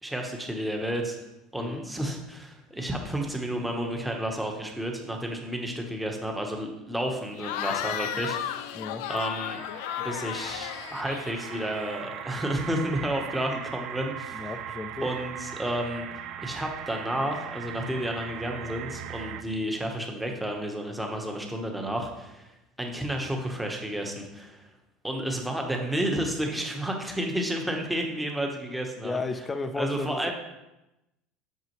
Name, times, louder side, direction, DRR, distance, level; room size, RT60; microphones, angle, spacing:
voice 1, 0.0-1.2 1.5-8.8 9.1-9.6 10.0-14.5 15.0-22.5 22.8-24.7 25.0-29.2 29.8-30.3, right 1 dB, 5° right, 2 dB, 1.0 m, -31 dB
Cheering / Crowd, 7.4-12.0, left 11 dB, 80° left, 0.5 m, -34 dB
voice 2, 8.7-9.1 14.3-15.1 29.0-30.3, left 3 dB, 15° left, 9 dB, 0.4 m, -34 dB
sound 1, 9.2-19.4, right 9 dB, 50° right, 0.4 m, -39 dB
8.1 x 6.7 x 3.0 m, 0.95 s
cardioid pair, 155°, 0 cm